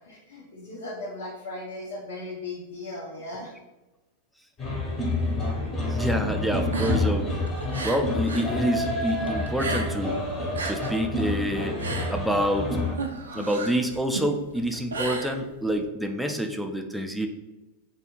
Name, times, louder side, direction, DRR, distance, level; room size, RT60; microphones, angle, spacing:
voice 1, 0.0-3.5, left 2 dB, 80° left, -4 dB, 0.5 m, -37 dB
sound 1, 4.6-13.0, left 1 dB, 25° left, 0.7 m, -28 dB
voice 2, 5.9-7.4 7.8-10.2 10.6-11.8 12.1-13.0 13.3-17.3, equal, ahead, 4 dB, 0.3 m, -27 dB
sound 2, 6.6-8.5 8.8-10.1 10.4-15.9, right 3 dB, 85° right, 0.3 m, -34 dB
2.4 x 2.3 x 2.9 m, 1.0 s
hypercardioid pair, 100°, 0 cm